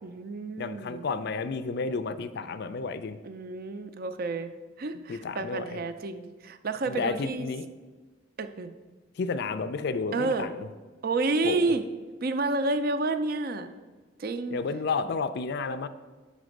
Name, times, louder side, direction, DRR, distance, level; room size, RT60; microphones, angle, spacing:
voice 1, 0.0-1.1 3.2-4.5 4.8-7.5 8.4-8.7 10.1-10.5 11.0-11.8 12.2-13.7 14.2-14.6, right 3 dB, 50° right, 9 dB, 0.5 m, -30 dB
voice 2, 0.6-3.2 5.1-5.8 6.9-7.7 9.2-10.7 11.4-11.7 14.5-15.9, left 4 dB, 55° left, 12 dB, 0.4 m, -31 dB
5.2 x 5.0 x 6.4 m, 1.3 s
head